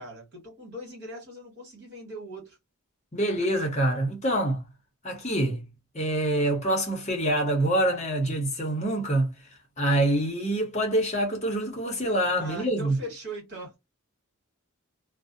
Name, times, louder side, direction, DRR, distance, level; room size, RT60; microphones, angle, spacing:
voice 1, 0.0-2.6 12.4-13.8, right 1 dB, 50° right, 1.5 m, -40 dB
voice 2, 3.1-4.6 5.0-5.7 5.9-9.3 9.8-13.0, right 1 dB, 30° left, 0.8 m, -25 dB
2.5 x 2.1 x 2.5 m
head